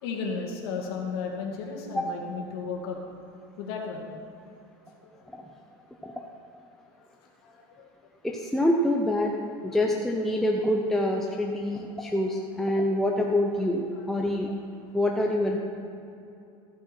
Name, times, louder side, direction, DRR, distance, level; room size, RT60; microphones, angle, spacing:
voice 1, 0.0-3.0 3.6-4.1 5.1-5.3 5.6-5.7 7.4-7.9 13.9-14.3, left 5 dB, 75° left, 0 dB, 2.2 m, -34 dB
voice 2, 8.2-9.3 9.6-14.5 14.9-15.6, left 1 dB, 5° left, 0 dB, 0.5 m, -26 dB
14.5 x 7.5 x 4.4 m, 2.8 s
cardioid pair, 170°, 13 cm